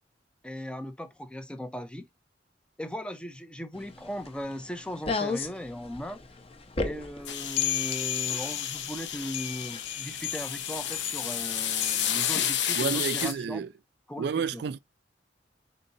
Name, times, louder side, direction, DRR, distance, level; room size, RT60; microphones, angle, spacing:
voice 1, 0.4-2.1 2.8-6.2 6.8-13.6 14.1-14.6, equal, 5° left, 0.4 m, -38 dB
sound 1, 3.7-12.5, left 7 dB, 35° left, 0.7 m, -34 dB
sound 2, 7.2-13.3, left 9 dB, 75° left, 0.7 m, -31 dB
voice 2, 12.7-13.7 14.2-14.8, right 6 dB, 65° right, 0.3 m, -30 dB
3.8 x 3.8 x 2.7 m
head